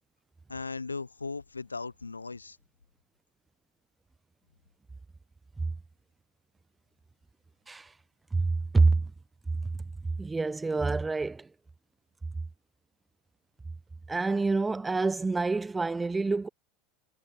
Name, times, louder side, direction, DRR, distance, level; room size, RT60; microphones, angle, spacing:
voice 1, 0.5-2.6, left 4 dB, 85° left, 0.4 m, -37 dB
voice 2, 8.3-9.1 10.2-11.5 14.1-16.5, right 3 dB, 15° right, 0.8 m, -27 dB
figure-of-eight pair, 80°, 0 cm